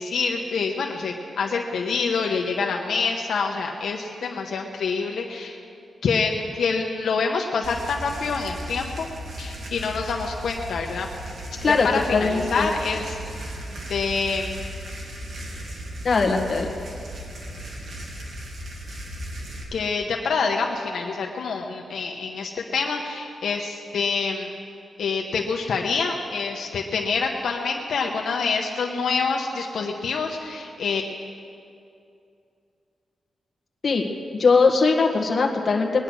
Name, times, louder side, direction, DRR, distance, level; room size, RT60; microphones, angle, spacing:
voice 1, 0.0-5.6 6.0-9.1 9.4-11.1 11.6-13.2 13.9-14.6 19.7-24.5 25.0-31.0, left 4 dB, 75° left, 1 dB, 1.1 m, -26 dB
sound 1, 7.6-19.6, right 1 dB, 65° right, 2.8 m, -36 dB
voice 2, 11.6-12.7 16.0-16.7 33.8-34.0 34.4-36.0, left 4 dB, 45° left, 1 dB, 1.7 m, -20 dB
20.5 x 10.5 x 6.3 m, 2.5 s
wide cardioid pair, 130°, 0 cm